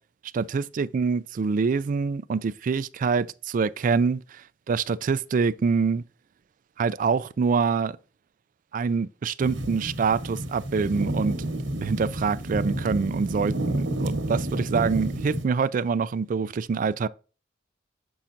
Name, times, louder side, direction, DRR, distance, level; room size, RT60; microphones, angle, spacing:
voice 1, 0.3-6.0 6.8-8.0 8.7-11.4 11.8-17.1, right 5 dB, 45° right, 0.3 m, -25 dB
sound 1, 9.4-15.5, right 1 dB, 80° right, 1.1 m, -30 dB
7.1 x 5.7 x 2.5 m
head